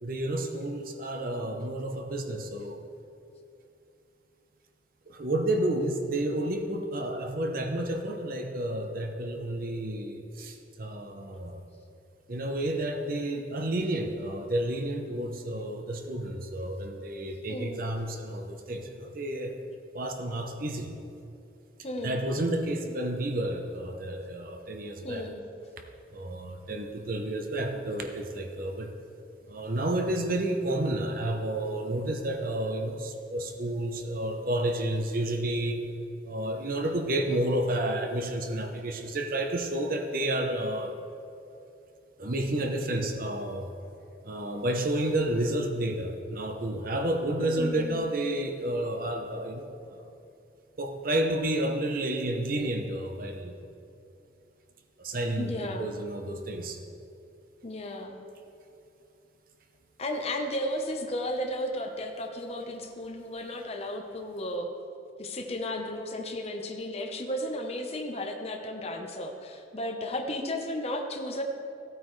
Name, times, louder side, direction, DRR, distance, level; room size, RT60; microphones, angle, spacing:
voice 1, 0.0-2.8 5.1-11.6 12.3-19.6 19.9-21.0 22.0-25.3 26.1-28.9 29.5-35.8 36.2-40.9 42.2-43.7 44.2-50.0 50.8-53.5 55.0-56.8, right 1 dB, 50° right, 4 dB, 0.8 m, -31 dB
voice 2, 17.5-17.8 21.8-22.2 25.0-25.4 47.4-48.1 55.4-55.9 57.6-58.2 60.0-64.7 65.2-71.4, left 1 dB, 35° left, 2 dB, 0.9 m, -34 dB
15.0 x 9.0 x 3.2 m, 2.7 s
head